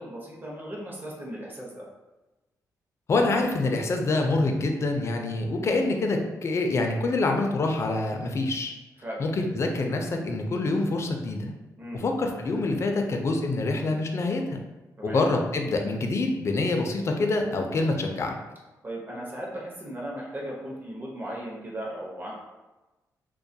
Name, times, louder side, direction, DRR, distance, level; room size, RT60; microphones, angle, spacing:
voice 1, 0.0-1.9 9.0-9.2 11.8-12.0 15.0-15.3 18.8-22.3, right 1 dB, 30° right, -4 dB, 0.7 m, -37 dB
voice 2, 3.1-8.7 9.2-11.5 11.9-14.6 15.0-18.3, left 2 dB, 45° left, 3 dB, 0.4 m, -26 dB
2.2 x 2.1 x 2.6 m, 1.1 s
cardioid pair, 90°, 7 cm